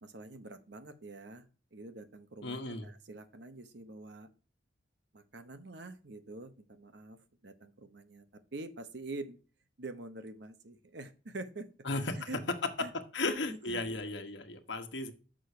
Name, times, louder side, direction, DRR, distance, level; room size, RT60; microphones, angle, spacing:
voice 1, 0.0-1.4 1.7-4.3 5.1-9.4 9.8-11.7 12.3-12.4 12.8-12.9 13.2-13.8, right 2 dB, 60° right, 10 dB, 0.9 m, -46 dB
voice 2, 2.4-2.9 11.8-12.3 13.1-15.1, left 2 dB, 65° left, 6 dB, 1.2 m, -35 dB
6.3 x 5.7 x 6.6 m, 0.36 s
head